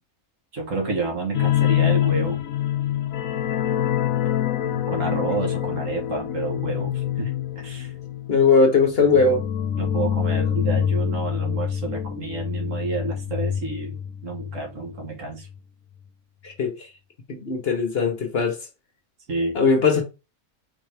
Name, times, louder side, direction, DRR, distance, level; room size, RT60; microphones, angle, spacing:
voice 1, 0.5-2.4 4.7-7.3 7.6-7.9 9.7-15.5 19.3-19.6, right 3 dB, 65° right, 1.7 m, -30 dB
sound 1, 1.3-14.6 14.9-15.1 15.5-15.6, left 10 dB, 75° left, 1.0 m, -25 dB
voice 2, 8.3-9.4 16.4-16.7 17.3-18.6 19.5-20.0, left 4 dB, 50° left, 1.0 m, -19 dB
4.0 x 3.9 x 3.3 m
omnidirectional pair, 1.5 m